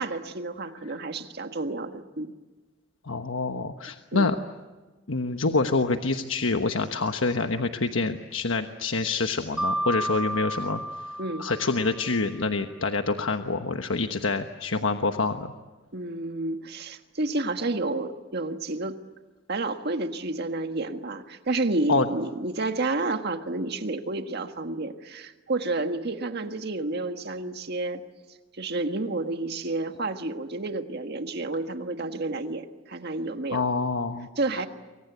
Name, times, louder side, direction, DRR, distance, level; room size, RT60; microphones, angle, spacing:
voice 1, 0.0-2.3 4.1-4.3 11.2-11.5 15.9-19.0 19.5-28.0 28.5-33.6 34.4-34.7, right 2 dB, 55° right, 7 dB, 1.7 m, -30 dB
voice 2, 3.1-4.4 5.1-10.8 11.4-15.5 21.9-22.1 33.5-34.3, left 3 dB, 80° left, 6 dB, 1.2 m, -26 dB
Mallet percussion, 9.6-12.3, right 1 dB, 5° right, 1.2 m, -32 dB
29.0 x 24.0 x 8.1 m, 1.2 s
head